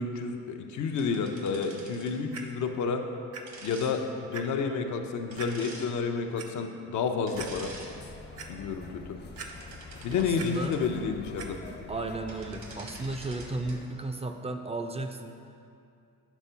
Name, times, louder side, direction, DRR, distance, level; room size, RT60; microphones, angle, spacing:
voice 1, 0.0-3.0 3.6-7.7 8.5-9.0 10.0-11.6, left 5 dB, 75° left, 5 dB, 0.6 m, -30 dB
sound 1, 1.0-2.2 3.5-3.9 5.3-5.9 7.3-7.9 8.4-8.6 9.2-10.8 12.0-12.1 12.3-13.8, right 3 dB, 70° right, 1.3 m, -47 dB
Clock, 2.3-2.4 3.3-3.4 3.9-4.0 4.3-4.4 5.4-5.5 6.1-6.5 7.0-7.1 7.4-7.5 8.0-8.5 9.4-9.9 10.2-10.5 11.4-11.5 12.2-12.3, right 6 dB, 50° right, 0.7 m, -41 dB
sound 2, 7.3-13.9, left 4 dB, 35° left, 0.5 m, -46 dB
voice 2, 9.9-10.7 11.9-15.4, right 2 dB, 20° right, 5 dB, 0.4 m, -35 dB
7.2 x 3.6 x 5.5 m, 2.5 s
cardioid pair, 90°, 30 cm